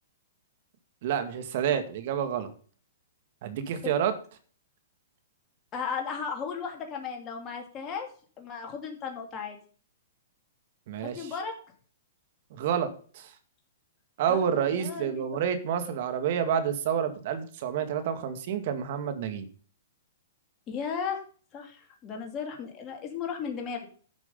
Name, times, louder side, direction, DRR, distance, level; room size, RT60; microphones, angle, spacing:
voice 1, 1.0-2.5 3.4-4.1 10.9-11.3 12.5-12.9 13.2-13.3 14.2-19.5, right 8 dB, 55° right, 9 dB, 1.9 m, -29 dB
voice 2, 5.7-8.1 8.4-9.6 11.0-11.5 14.3-15.3 20.7-21.2 21.5-23.9, left 6 dB, 30° left, 2 dB, 2.5 m, -35 dB
11.0 x 6.3 x 5.4 m, 0.43 s
hypercardioid pair, 125°, 0 cm